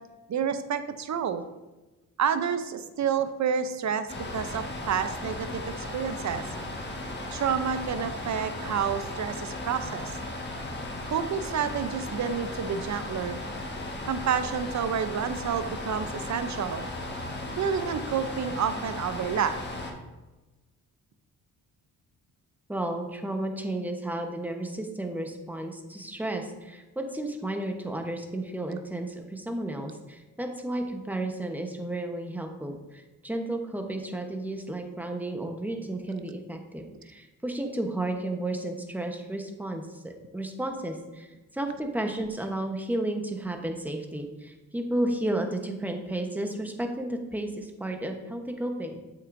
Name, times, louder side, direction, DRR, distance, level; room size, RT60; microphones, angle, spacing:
voice 1, 0.3-1.4 2.2-6.4 7.3-10.1 11.1-13.4 14.1-16.8 17.6-19.6, right 7 dB, 50° right, 11 dB, 0.6 m, -29 dB
sound 1, 4.1-19.9, left 1 dB, 30° left, 1.4 m, -36 dB
voice 2, 22.7-49.0, right 1 dB, 5° right, 4 dB, 0.9 m, -33 dB
7.8 x 6.1 x 2.6 m, 1.1 s
cardioid pair, 75°, 35 cm